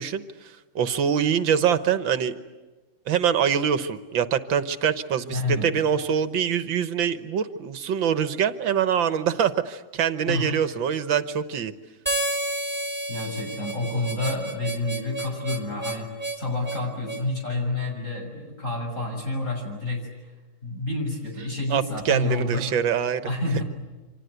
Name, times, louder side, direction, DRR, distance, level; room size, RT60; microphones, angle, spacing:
voice 1, 0.0-2.4 3.1-11.7 21.7-23.2, right 8 dB, 80° right, 11 dB, 1.8 m, -24 dB
voice 2, 5.3-5.7 10.3-10.5 13.1-16.1 16.4-20.1 20.6-22.6 23.2-23.6, left 2 dB, 40° left, 2 dB, 7.4 m, -29 dB
Harmonica, 12.1-17.3, right 2 dB, 5° right, 2.4 m, -31 dB
29.0 x 25.5 x 8.1 m, 1.2 s
omnidirectional pair, 2.1 m